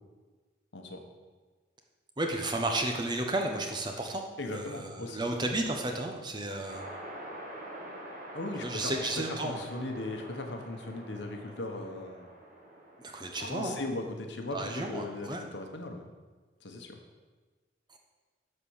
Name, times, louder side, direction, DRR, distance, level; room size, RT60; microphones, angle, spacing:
voice 1, 2.2-6.8 8.6-9.6 13.0-13.8 14.5-15.4 17.9-18.0, right 2 dB, 25° right, 3 dB, 0.9 m, -33 dB
voice 2, 4.4-5.2 8.3-8.9 9.4-12.3 13.4-16.0 16.6-17.0, left 2 dB, 70° left, 3 dB, 1.2 m, -38 dB
sound 1, 6.7-14.0, right 1 dB, 45° right, 1.8 m, -46 dB
11.0 x 4.5 x 7.2 m, 1.4 s
head